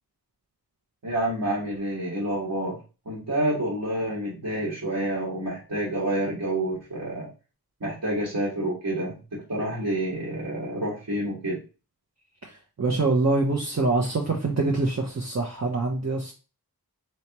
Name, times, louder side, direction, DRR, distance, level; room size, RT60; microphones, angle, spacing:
voice 1, 1.0-2.8 3.1-7.3 7.8-11.6, right 1 dB, 60° right, -6 dB, 1.8 m, -28 dB
voice 2, 12.8-16.3, right 3 dB, 45° right, 0 dB, 0.8 m, -24 dB
4.4 x 3.2 x 3.0 m, 0.33 s
wide cardioid pair, 50°, 38 cm